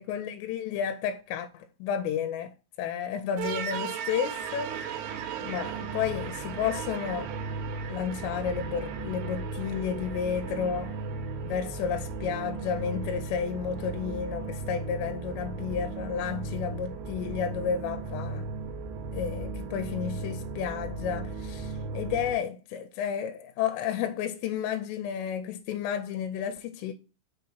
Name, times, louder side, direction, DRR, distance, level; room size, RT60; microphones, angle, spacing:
voice 1, 0.0-5.0 5.4-7.3 7.9-11.0 11.4-18.5 19.1-26.9, left 8 dB, 85° left, 2.8 m, -32 dB
sound 1, 3.4-22.4, right 4 dB, 80° right, 2.7 m, -36 dB
6.2 x 2.9 x 5.4 m
omnidirectional pair, 5.0 m